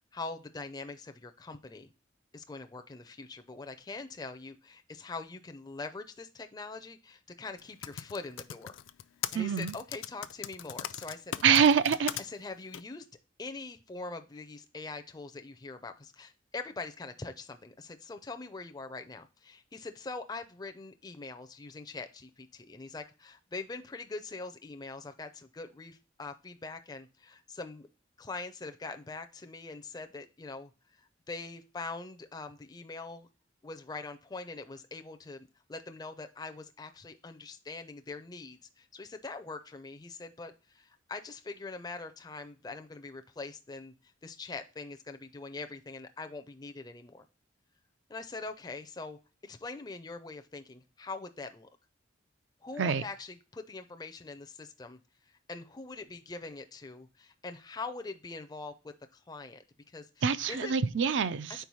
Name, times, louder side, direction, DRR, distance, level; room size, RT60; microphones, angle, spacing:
voice 1, 0.1-1.9 2.3-8.8 9.3-11.7 12.2-13.1 13.4-27.9 28.2-30.7 31.0-33.3 33.6-43.9 44.2-47.3 48.1-51.7 52.6-55.0 55.3-60.8 61.5-61.6, left 3 dB, 20° left, 0.4 m, -43 dB
Typing, 7.6-12.2 12.7-12.8, left 11 dB, 80° left, 0.4 m, -38 dB
voice 2, 9.3-9.7 11.4-12.1 52.8-53.0 60.2-61.6, right 7 dB, 70° right, 0.4 m, -25 dB
4.6 x 4.4 x 5.4 m
head